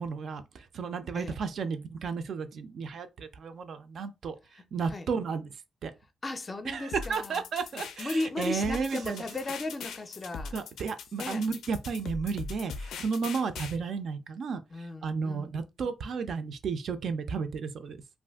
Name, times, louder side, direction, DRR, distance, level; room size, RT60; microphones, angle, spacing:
voice 1, 0.0-5.4 5.8-5.9 6.7-9.2 10.5-18.0, right 5 dB, 55° right, 0.4 m, -33 dB
voice 2, 6.2-7.4 8.0-10.5 11.1-11.4 14.7-15.6, left 2 dB, 25° left, 0.4 m, -36 dB
sound 1, 6.9-13.8, left 5 dB, 85° left, 0.4 m, -41 dB
sound 2, 8.9-10.7, right 5 dB, 85° right, 0.7 m, -54 dB
2.5 x 2.5 x 3.4 m
cardioid pair, 145°, 0 cm